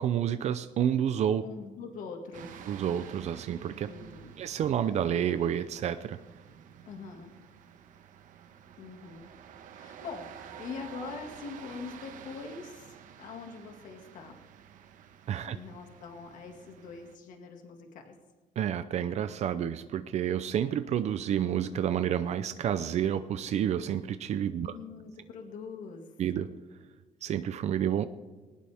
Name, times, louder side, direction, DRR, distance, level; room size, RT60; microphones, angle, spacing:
voice 1, 0.0-1.4 2.7-3.9 4.4-6.2 15.3-15.6 18.6-24.7 26.2-26.5 27.2-28.1, right 9 dB, 50° right, 12 dB, 0.6 m, -29 dB
voice 2, 1.4-2.7 3.8-4.3 6.8-7.3 8.8-9.3 9.7-14.4 15.5-18.2 24.5-26.1, left 5 dB, 70° left, 3 dB, 2.2 m, -43 dB
sound 1, 2.3-17.2, right 8 dB, 70° right, 1.3 m, -50 dB
21.0 x 19.0 x 3.6 m, 1.3 s
cardioid pair, 165°, 14 cm